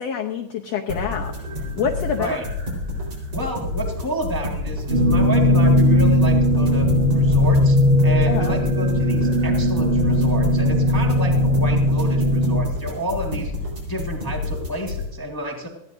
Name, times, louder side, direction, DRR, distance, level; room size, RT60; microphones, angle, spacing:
voice 1, 0.0-2.4 8.3-8.6, left 7 dB, 70° left, 3 dB, 1.6 m, -27 dB
sound 1, 0.9-15.0, left 2 dB, 50° right, 5.4 m, -30 dB
voice 2, 3.3-6.9 7.1-7.8 8.0-13.5 13.9-15.7, right 1 dB, 30° left, 0 dB, 0.4 m, -30 dB
sound 2, 4.9-12.6, left 1 dB, 25° right, 1.4 m, -18 dB
19.0 x 14.5 x 2.7 m, 0.95 s
omnidirectional pair, 3.7 m